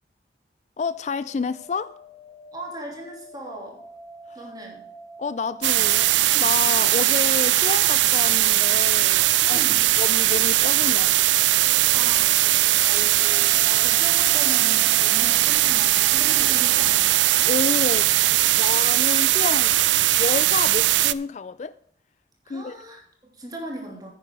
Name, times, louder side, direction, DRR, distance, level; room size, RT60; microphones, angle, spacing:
voice 1, 0.8-1.9 4.3-4.5 5.2-9.6 10.0-11.3 17.4-19.8 20.2-21.7 22.5-22.8, left 5 dB, 40° left, 0.3 m, -29 dB
sound 1, 1.1-8.5 10.5-17.8, right 1 dB, 5° left, 5.2 m, -46 dB
voice 2, 2.5-3.8 4.3-4.8 9.4-9.9 11.7-12.4 12.8-17.1 22.4-24.1, right 1 dB, 20° right, 3.1 m, -38 dB
sound 2, 5.6-21.1, right 16 dB, 90° right, 0.4 m, -19 dB
9.9 x 9.3 x 4.8 m
head